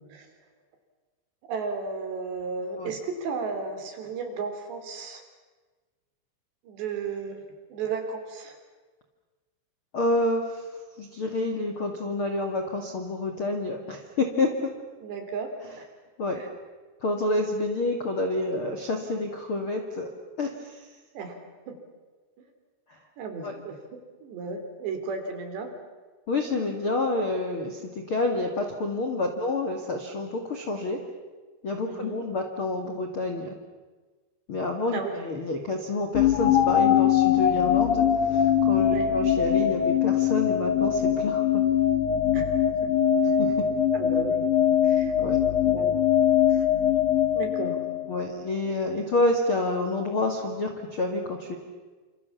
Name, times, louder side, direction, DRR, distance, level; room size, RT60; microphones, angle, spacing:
voice 1, 1.5-5.2 6.6-7.4 7.7-8.6 15.0-15.5 15.8-15.9 16.3-16.5 21.1-21.8 23.2-25.7 26.6-26.7 31.8-32.2 34.9-35.2 38.9-39.1 42.3-42.9 43.2-43.4 43.9-44.5 44.8-45.1 45.7-46.0 46.5-46.7 47.3-47.8, right 5 dB, 60° right, 6 dB, 5.1 m, -34 dB
voice 2, 9.9-10.6 11.0-14.7 16.2-16.4 17.0-20.1 20.4-20.9 23.4-23.5 26.3-31.0 31.6-33.6 34.5-41.6 43.4-43.7 45.2-45.4 48.1-51.6, left 2 dB, 45° left, 3 dB, 1.7 m, -28 dB
sound 1, 36.1-48.2, left 9 dB, 85° left, 1.7 m, -22 dB
28.5 x 28.0 x 7.2 m, 1.3 s
omnidirectional pair, 5.7 m